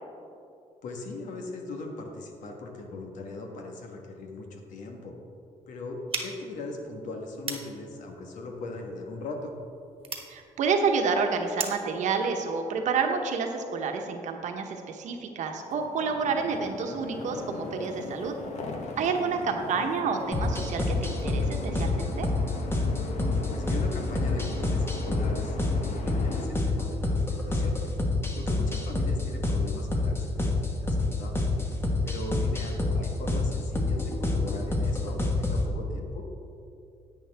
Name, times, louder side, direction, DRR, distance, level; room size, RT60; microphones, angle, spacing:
voice 1, 0.8-5.1 5.7-9.5 19.3-19.9 23.5-27.8 28.3-31.4 32.0-36.2, left 2 dB, 80° left, 2 dB, 1.4 m, -39 dB
sound 1, 6.1-12.0, right 4 dB, 45° right, 1.2 m, -39 dB
voice 2, 10.3-18.4 19.0-22.3, right 5 dB, 70° right, 4 dB, 1.0 m, -29 dB
sound 2, 15.5-26.5, left 4 dB, 65° left, 1.1 m, -39 dB
sound 3, 20.3-35.7, left 2 dB, 20° left, 1.3 m, -27 dB
10.5 x 8.9 x 3.5 m, 2.7 s
cardioid pair, 110°, 13 cm